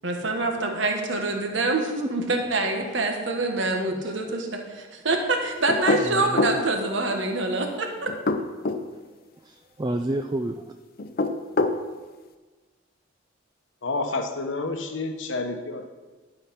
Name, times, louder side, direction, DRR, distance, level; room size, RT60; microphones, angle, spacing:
voice 1, 0.0-8.1, right 2 dB, 65° right, 3 dB, 1.4 m, -26 dB
sound 1, 5.7-6.6 8.1-8.9 11.0-11.8, left 3 dB, 45° left, 0.5 m, -24 dB
voice 2, 6.0-6.6 8.9-9.0 9.4-10.7, right 1 dB, 20° right, 5 dB, 0.3 m, -31 dB
voice 3, 13.8-15.9, left 3 dB, 70° left, 6 dB, 1.0 m, -29 dB
11.5 x 5.6 x 5.9 m, 1.3 s
head